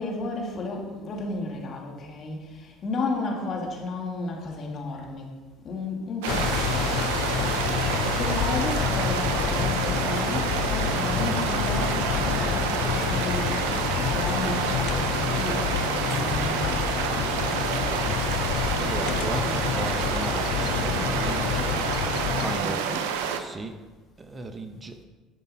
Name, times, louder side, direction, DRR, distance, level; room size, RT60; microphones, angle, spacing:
voice 1, 0.0-5.3 5.6-7.4 8.1-13.8 14.1-17.9 22.6-23.1, left 3 dB, 50° left, 0 dB, 2.2 m, -33 dB
sound 1, 6.2-23.4, right 8 dB, 80° right, 0.7 m, -28 dB
sound 2, 6.3-22.6, left 9 dB, 65° left, 0.5 m, -28 dB
voice 2, 18.4-21.7 22.4-22.9 23.4-23.8 24.2-25.0, right 3 dB, 30° right, 7 dB, 0.9 m, -36 dB
12.0 x 5.3 x 4.2 m, 1.2 s
hypercardioid pair, 75°, 0 cm